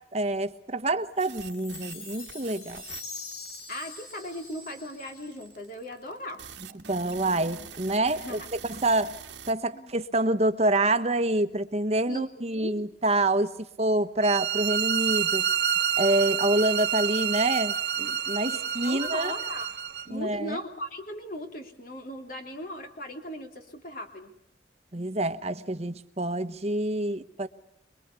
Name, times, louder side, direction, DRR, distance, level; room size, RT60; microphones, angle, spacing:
voice 1, 0.1-2.8 6.7-9.2 9.5-13.5 13.8-15.5 16.0-19.3 20.1-20.6 24.9-27.5, right 2 dB, 35° right, 10 dB, 1.3 m, -27 dB
Chime, 1.2-5.6, left 3 dB, 80° left, 7.2 m, -43 dB
sound 1, 1.2-9.5, right 8 dB, 90° right, 1.9 m, -45 dB
voice 2, 3.7-6.4 8.2-8.5 9.7-9.9 12.1-12.7 18.5-19.8 20.1-24.3, left 1 dB, 50° left, 4 dB, 3.1 m, -38 dB
sound 2, 14.2-20.1, right 9 dB, 60° right, 1.0 m, -28 dB
26.5 x 22.5 x 8.3 m, 0.75 s
head